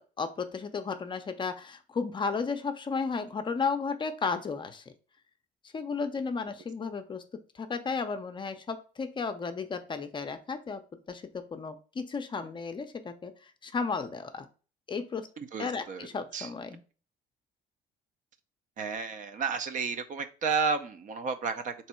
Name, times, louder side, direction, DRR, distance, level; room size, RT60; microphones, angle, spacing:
voice 1, 0.0-4.9 5.7-7.2 7.5-10.8 11.1-14.5 14.9-15.3 15.6-16.8, left 5 dB, 30° left, 8 dB, 0.5 m, -34 dB
voice 2, 15.4-16.1 16.3-16.5 18.8-21.7, right 5 dB, 50° right, 9 dB, 0.6 m, -32 dB
3.5 x 3.0 x 4.3 m, 0.37 s
cardioid pair, 110°, 17 cm